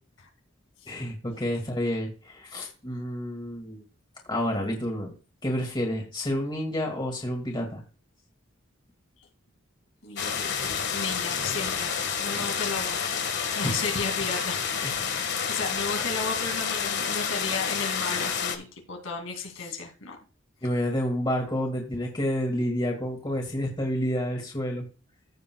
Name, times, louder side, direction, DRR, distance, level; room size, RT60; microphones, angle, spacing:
voice 1, 0.9-3.8 4.3-5.1 5.4-7.8 13.6-13.8 14.8-15.0 20.6-24.9, equal, 20° left, 0 dB, 2.2 m, -29 dB
voice 2, 10.0-14.7 15.2-20.2, left 4 dB, 80° left, 2 dB, 2.6 m, -34 dB
sound 1, 10.2-18.6, left 7 dB, 55° left, 1.7 m, -29 dB
15.5 x 6.7 x 2.3 m, 0.34 s
head